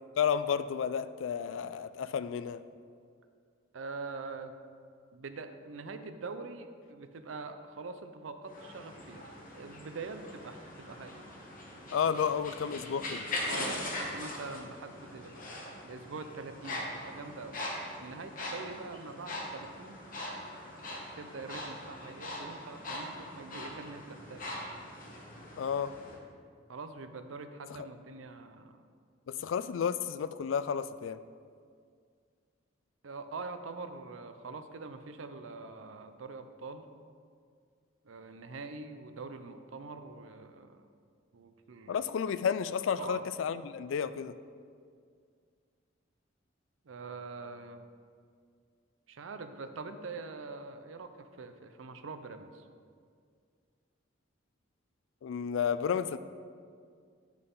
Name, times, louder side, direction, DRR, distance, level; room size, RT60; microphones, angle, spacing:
voice 1, 0.2-2.6 11.9-13.3 25.6-25.9 27.8-27.9 29.3-31.2 41.9-44.4 55.2-56.2, left 7 dB, 80° left, 13 dB, 0.3 m, -31 dB
voice 2, 3.7-4.6 5.1-9.3 9.5-11.2 13.4-15.4 15.8-17.6 18.0-20.0 21.1-24.4 26.7-28.8 33.0-36.9 38.0-40.9 41.3-42.0 43.0-43.3 46.9-47.8 49.1-52.7, right 3 dB, 90° right, 9 dB, 0.6 m, -44 dB
sound 1, 8.5-26.2, left 1 dB, 45° left, 1.2 m, -41 dB
9.7 x 5.9 x 3.8 m, 2.1 s
head